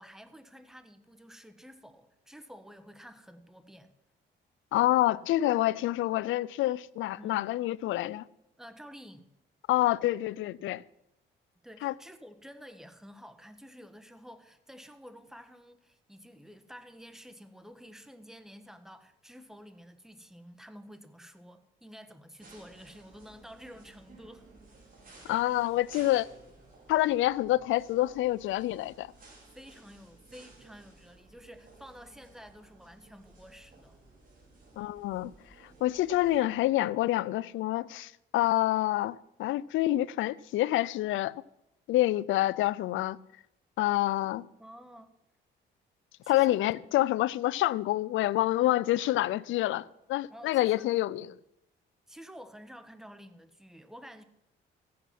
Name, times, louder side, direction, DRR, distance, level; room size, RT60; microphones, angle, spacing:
voice 1, 0.0-4.0 7.1-7.5 8.6-9.3 11.6-24.5 25.3-25.5 29.5-34.0 44.6-45.1 46.2-46.8 50.3-50.9 52.1-54.2, equal, ahead, 1.1 m, -50 dB
voice 2, 4.7-8.2 9.7-10.8 11.8-11.9 25.2-26.3 26.9-29.1 34.8-35.3 35.8-41.3 41.9-43.2 43.8-44.5 46.3-51.3, left 15 dB, 80° left, 0.4 m, -27 dB
sound 1, 22.4-36.4, right 2 dB, 45° right, 4.5 m, -56 dB
14.5 x 8.5 x 5.9 m
cardioid pair, 90°, 20 cm